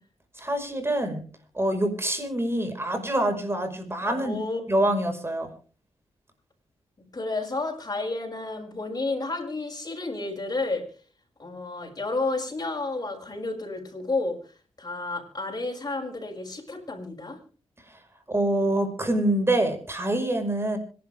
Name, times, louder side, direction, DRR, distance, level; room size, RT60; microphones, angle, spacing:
voice 1, 0.4-1.2 1.5-4.4 4.7-5.5 17.9-18.0 18.3-20.8, right 1 dB, 20° right, 6 dB, 5.4 m, -25 dB
voice 2, 4.0-4.8 7.1-10.9 11.4-14.4 14.8-17.4, left 3 dB, 35° left, 1 dB, 6.8 m, -31 dB
26.0 x 11.5 x 3.6 m, 0.39 s
cardioid pair, 60°, 11 cm